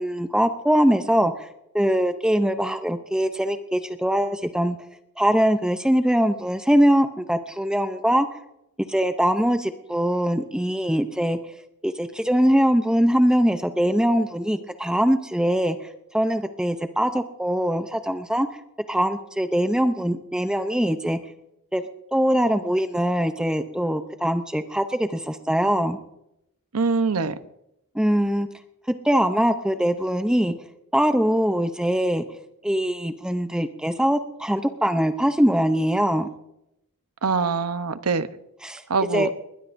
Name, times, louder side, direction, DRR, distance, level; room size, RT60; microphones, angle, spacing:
voice 1, 0.0-1.5 1.7-4.8 5.2-8.3 8.9-11.4 11.8-15.8 16.1-18.5 18.9-21.2 21.7-21.8 22.1-26.0 27.9-28.5 29.0-30.5 30.9-32.2 32.6-36.3 38.6-38.8 39.1-39.3, equal, 5° right, 8 dB, 0.6 m, -22 dB
voice 2, 26.7-27.4 37.2-38.3 38.9-39.3, right 4 dB, 85° right, 11 dB, 0.8 m, -23 dB
21.0 x 20.5 x 2.6 m, 0.85 s
head